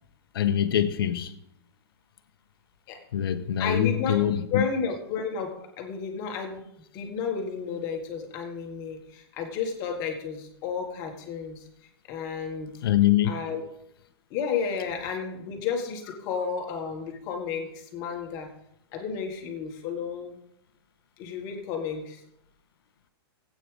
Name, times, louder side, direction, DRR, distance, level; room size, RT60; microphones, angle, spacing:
voice 1, 0.3-1.3 3.1-4.6 12.8-13.3, left 11 dB, 65° left, 1.0 m, -24 dB
voice 2, 3.6-6.7 6.9-11.7 12.1-12.7 13.3-13.6 14.3-18.5 18.9-20.4 21.2-22.2, left 6 dB, 25° left, 1.6 m, -32 dB
17.0 x 8.6 x 3.4 m
supercardioid pair, 175°, 13 cm